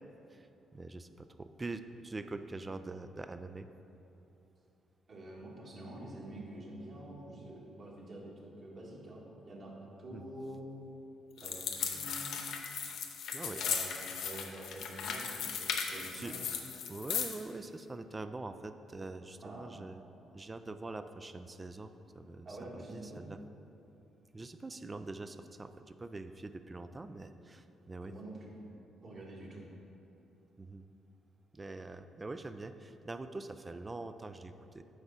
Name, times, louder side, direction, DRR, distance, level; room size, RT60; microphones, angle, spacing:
voice 1, 0.7-3.7 10.1-10.2 13.3-13.6 16.1-16.3 16.9-20.0 20.3-22.5 22.7-23.4 24.3-28.1 29.5-29.6 30.6-30.8 31.5-34.8, right 3 dB, 25° right, 10 dB, 0.4 m, -44 dB
voice 2, 5.1-8.3 8.6-10.7 11.4-12.6 13.5-16.5 19.4-19.7 22.5-23.3 28.0-28.5 29.0-29.6, right 1 dB, 50° right, -4 dB, 1.9 m, -47 dB
sound 1, 11.4-17.4, left 6 dB, 75° left, 0.7 m, -37 dB
7.9 x 4.8 x 5.6 m, 2.8 s
cardioid pair, 90°, 0 cm